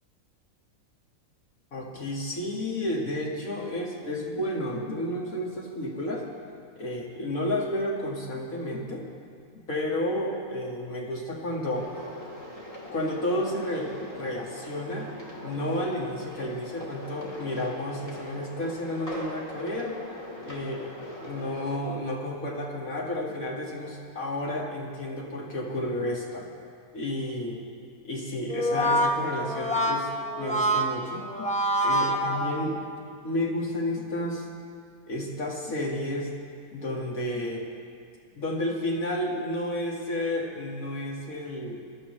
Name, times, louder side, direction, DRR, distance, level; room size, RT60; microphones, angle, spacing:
voice 1, 1.7-6.2 6.8-9.0 9.7-11.9 12.9-15.1 15.4-20.0 20.4-26.5 26.9-27.7 28.0-30.1 30.4-31.5 31.8-32.9 33.2-34.5 35.1-36.3 36.7-37.6 38.4-41.8, left 1 dB, 70° left, -2 dB, 2.4 m, -31 dB
sound 1, 11.7-21.8, left 1 dB, 25° left, 2.3 m, -41 dB
Brass instrument, 28.5-33.0, equal, 5° left, 0.6 m, -26 dB
23.0 x 12.5 x 3.2 m, 2.4 s
omnidirectional pair, 1.5 m